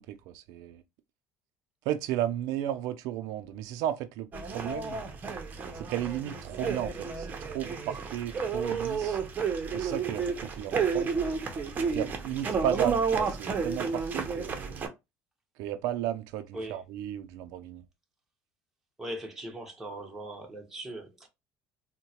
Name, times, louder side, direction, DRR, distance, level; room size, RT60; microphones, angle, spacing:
voice 1, 0.1-0.8 1.9-5.0 5.7-9.2 9.7-11.1 11.9-14.9 15.6-17.8, right 11 dB, 80° right, 0.4 m, -34 dB
sound 1, 4.3-14.9, right 5 dB, 30° right, 0.7 m, -31 dB
voice 2, 19.0-21.3, right 1 dB, 5° right, 0.9 m, -39 dB
3.7 x 2.1 x 2.8 m
cardioid pair, 130°, 6 cm